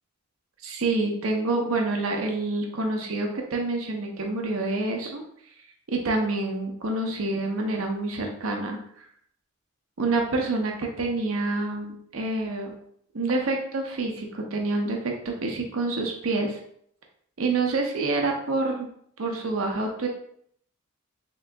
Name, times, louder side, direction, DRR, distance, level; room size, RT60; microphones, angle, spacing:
voice 1, 0.6-5.2 5.9-8.8 10.0-12.8 13.1-16.6 17.4-18.9 19.2-20.1, right 2 dB, 75° right, 2 dB, 0.7 m, -27 dB
3.7 x 3.0 x 3.4 m, 0.66 s
head